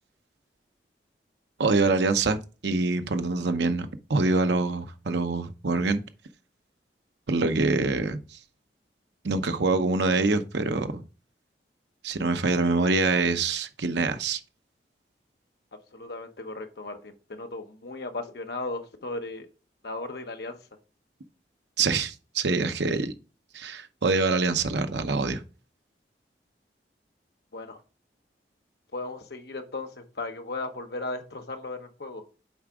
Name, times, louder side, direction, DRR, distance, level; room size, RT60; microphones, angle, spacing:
voice 1, 1.6-2.4 2.6-6.0 7.3-8.2 9.2-11.0 12.0-14.4 21.8-23.1 23.5-25.4, right 3 dB, 80° right, 0.8 m, -25 dB
voice 2, 15.9-19.5 19.8-20.6 27.5-27.8 28.9-29.9 30.1-32.2, left 2 dB, 65° left, 1.0 m, -36 dB
7.2 x 4.9 x 3.6 m
head